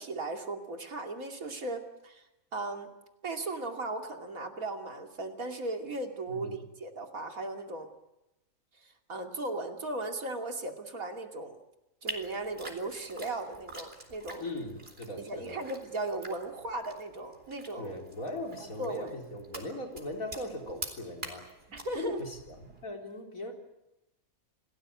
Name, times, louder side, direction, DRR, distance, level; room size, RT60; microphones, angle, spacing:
voice 1, 0.0-2.2 2.5-2.9 3.2-7.9 8.8-11.6 12.0-14.4 15.2-18.0 18.8-19.1 21.7-22.2, right 2 dB, 80° right, 4 dB, 3.1 m, -37 dB
voice 2, 6.3-6.6 14.4-15.6 17.8-21.5 21.9-23.5, left 1 dB, 80° left, 2 dB, 4.4 m, -39 dB
sound 1, 12.1-22.9, right 2 dB, 45° right, 4.2 m, -47 dB
28.5 x 18.5 x 8.5 m, 0.94 s
omnidirectional pair, 1.4 m